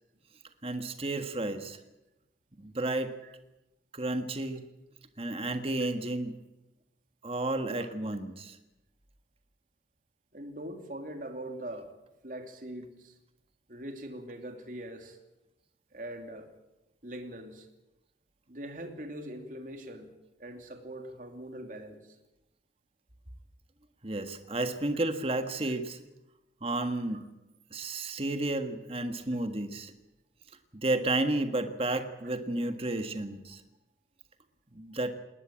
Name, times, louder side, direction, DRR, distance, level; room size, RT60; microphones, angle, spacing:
voice 1, 0.6-1.8 2.6-3.1 3.9-4.6 5.2-6.4 7.2-8.6 24.0-26.0 26.6-27.2 27.7-29.9 30.7-33.6 34.7-35.2, right 2 dB, 30° right, 8 dB, 1.6 m, -32 dB
voice 2, 10.3-11.9 12.2-13.1 13.7-15.2 15.9-16.5 17.0-17.7 18.5-20.1 20.4-22.0, right 1 dB, 50° right, 5 dB, 2.8 m, -42 dB
20.0 x 19.5 x 8.9 m, 0.95 s
head